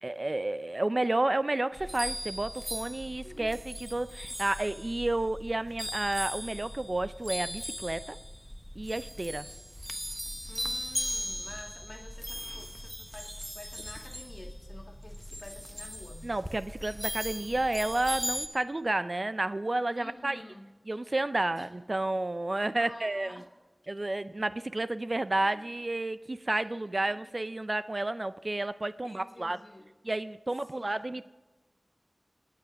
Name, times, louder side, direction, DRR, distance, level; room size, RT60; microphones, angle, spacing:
voice 1, 0.0-8.2 8.8-9.5 16.2-20.4 20.9-23.4 23.9-29.6 30.0-31.3, right 2 dB, 50° right, 14 dB, 0.4 m, -31 dB
sound 1, 1.7-18.5, equal, 5° left, 0.8 m, -38 dB
voice 2, 3.2-3.6 10.5-16.3 19.9-20.7 21.5-21.7 22.8-23.5 25.4-25.6 26.7-27.3 29.0-29.9 30.7-30.9, left 1 dB, 50° left, 4 dB, 1.9 m, -49 dB
26.5 x 9.2 x 5.3 m, 1.3 s
wide cardioid pair, 55°, 0 cm